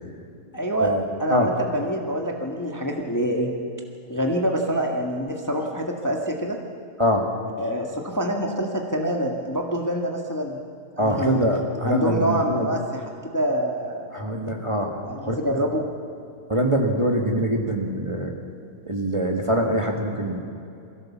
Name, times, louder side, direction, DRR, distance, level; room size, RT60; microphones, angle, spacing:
voice 1, 0.5-0.9 1.2-3.5 4.1-6.6 7.6-10.6 11.0-11.4 11.8-14.1 15.1-15.8, right 1 dB, 10° left, 1 dB, 1.5 m, -26 dB
voice 2, 11.0-12.7 14.1-15.4 16.5-18.3 18.9-20.4, equal, 20° right, 1 dB, 1.8 m, -23 dB
23.0 x 16.0 x 7.3 m, 2.6 s
omnidirectional pair, 1.7 m